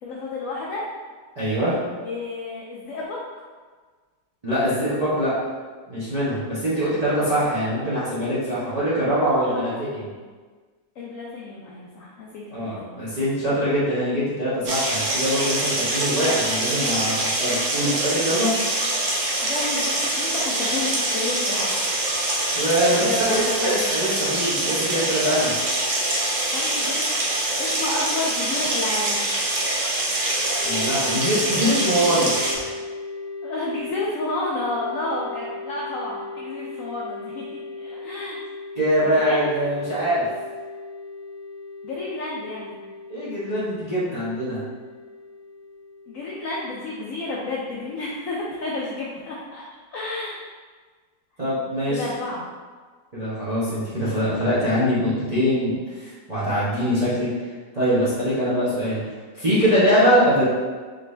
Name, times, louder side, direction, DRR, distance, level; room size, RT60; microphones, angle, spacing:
voice 1, 0.0-0.8 2.0-3.2 8.5-8.7 9.3-9.8 11.0-13.0 19.4-21.7 22.2-22.6 23.0-23.9 26.5-29.3 31.0-31.2 33.4-38.4 39.2-39.5 41.8-42.8 46.1-49.6 49.9-50.4 51.9-52.5, left 2 dB, 75° left, -4 dB, 0.7 m, -31 dB
voice 2, 1.4-1.8 4.4-5.3 5.9-10.1 12.5-18.5 22.5-25.5 30.6-32.7 38.8-40.2 43.1-44.6 51.4-52.0 53.1-57.3 57.7-59.0 59.3-60.4, equal, 30° right, -11 dB, 0.8 m, -23 dB
sound 1, 14.6-32.5, right 1 dB, 55° right, 0.8 m, -24 dB
sound 2, 30.6-48.0, left 3 dB, 80° right, 2.0 m, -37 dB
4.0 x 3.3 x 3.3 m, 1.4 s
omnidirectional pair, 2.0 m